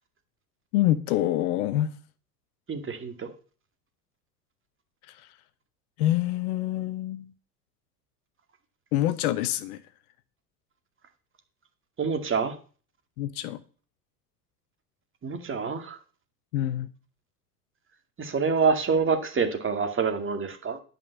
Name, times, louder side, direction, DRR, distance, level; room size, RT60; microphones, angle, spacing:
voice 1, 0.7-1.9 6.0-7.3 8.9-9.8 13.2-13.6 16.5-16.9, left 14 dB, 65° left, 1.1 m, -26 dB
voice 2, 2.7-3.3 12.0-12.6 15.2-16.0 18.2-20.8, right 5 dB, 25° right, 2.2 m, -26 dB
11.0 x 5.6 x 8.2 m
hypercardioid pair, 85°, 49 cm